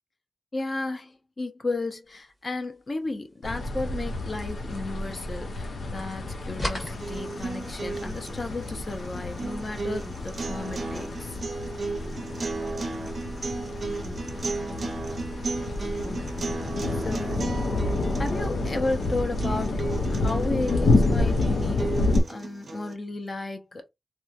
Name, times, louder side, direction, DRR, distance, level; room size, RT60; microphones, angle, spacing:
voice 1, 0.5-11.4 16.9-17.6 18.2-19.8 20.1-21.9 22.3-23.9, left 2 dB, 40° left, 0.6 m, -33 dB
sound 1, 3.4-22.2, left 2 dB, 90° left, 0.6 m, -29 dB
sound 2, 6.0-7.8, equal, 20° left, 1.2 m, -38 dB
sound 3, 6.9-22.9, right 3 dB, 45° right, 0.5 m, -35 dB
2.9 x 2.2 x 2.4 m
wide cardioid pair, 130°, 0 cm